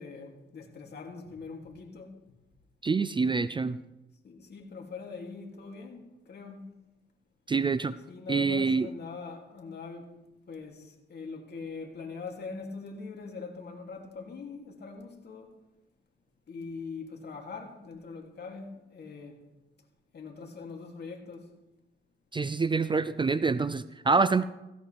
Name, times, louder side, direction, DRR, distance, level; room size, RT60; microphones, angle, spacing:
voice 1, 0.0-2.3 4.2-6.7 8.1-10.2 10.5-15.5 16.5-19.4 20.1-21.5, left 4 dB, 55° left, 2.9 m, -42 dB
voice 2, 2.8-3.8 7.5-7.9 8.3-8.9 22.3-24.4, right 4 dB, 25° right, 0.5 m, -26 dB
17.0 x 16.5 x 3.5 m
cardioid pair, 85°, 21 cm